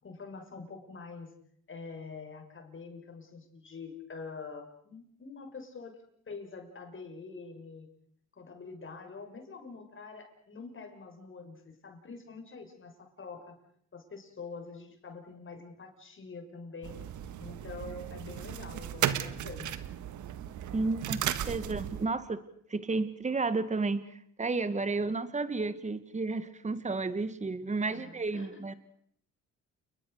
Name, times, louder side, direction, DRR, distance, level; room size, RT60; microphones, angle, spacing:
voice 1, 0.0-1.3 1.7-6.0 6.3-7.9 8.3-13.5 13.9-17.0 17.4-19.9 27.8-28.6, left 4 dB, 40° left, 5 dB, 6.3 m, -45 dB
sound 1, 16.8-22.1, right 10 dB, 75° right, 1.7 m, -35 dB
voice 2, 20.7-22.4 22.7-28.7, right 3 dB, 25° right, 13 dB, 1.9 m, -32 dB
30.0 x 21.0 x 6.7 m, 0.65 s
cardioid pair, 90°, 30 cm